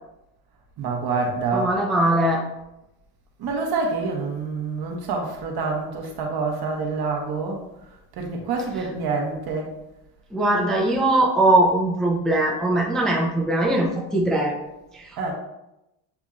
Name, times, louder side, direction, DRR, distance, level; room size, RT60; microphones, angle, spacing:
voice 1, 0.8-1.7 3.4-7.6 8.2-9.7 15.2-15.3, right 4 dB, 55° right, 1 dB, 1.2 m, -27 dB
voice 2, 1.5-2.4 10.3-14.6 14.9-15.1, right 1 dB, ahead, -2 dB, 0.5 m, -20 dB
7.1 x 2.8 x 2.4 m, 0.90 s
cardioid pair, 105°, 46 cm